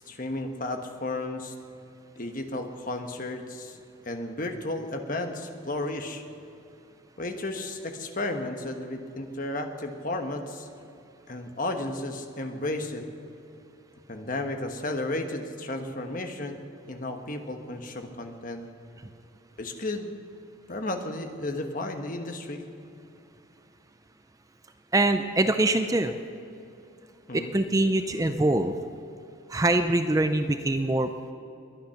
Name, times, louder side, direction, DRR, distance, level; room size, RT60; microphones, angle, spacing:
voice 1, 0.1-1.5 2.2-3.8 4.0-6.2 7.2-10.7 11.3-13.0 14.1-18.6 19.6-20.1 20.7-22.6 27.3-27.5, left 2 dB, 40° left, 5 dB, 1.3 m, -33 dB
voice 2, 24.9-26.2 27.3-28.7 29.5-31.3, right 2 dB, 15° right, 8 dB, 0.5 m, -24 dB
22.5 x 9.5 x 5.8 m, 2.7 s
head